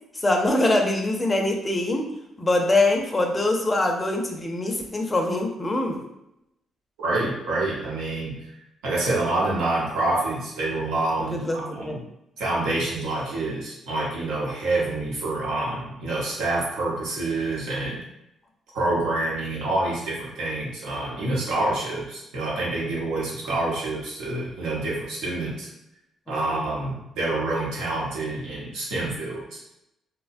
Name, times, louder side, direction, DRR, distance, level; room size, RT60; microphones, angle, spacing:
voice 1, 0.1-2.1 2.4-6.0 11.3-12.0 26.3-26.7, left 2 dB, 20° left, 2 dB, 0.5 m, -24 dB
voice 2, 7.0-8.4 8.8-12.0 12.4-18.0 18.7-25.7 26.3-29.6, right 2 dB, 85° right, -5 dB, 0.9 m, -27 dB
2.9 x 2.1 x 2.5 m, 0.85 s
cardioid pair, 90°, 0 cm